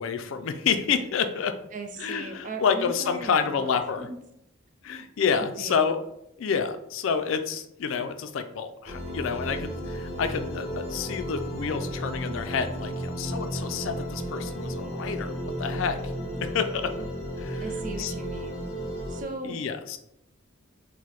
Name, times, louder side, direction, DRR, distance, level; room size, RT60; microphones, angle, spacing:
voice 1, 0.0-1.6 2.0-4.1 4.8-6.0 6.4-15.3 15.6-16.1 16.4-16.9 17.4-18.1 19.4-20.0, left 6 dB, 70° left, 8 dB, 0.3 m, -29 dB
voice 2, 1.7-3.7 4.0-4.2 5.4-5.8 17.6-18.7 19.1-19.6, right 3 dB, 35° right, 4 dB, 0.4 m, -38 dB
sound 1, 8.8-19.2, equal, 35° left, 0.8 m, -34 dB
4.7 x 2.1 x 2.9 m, 0.81 s
head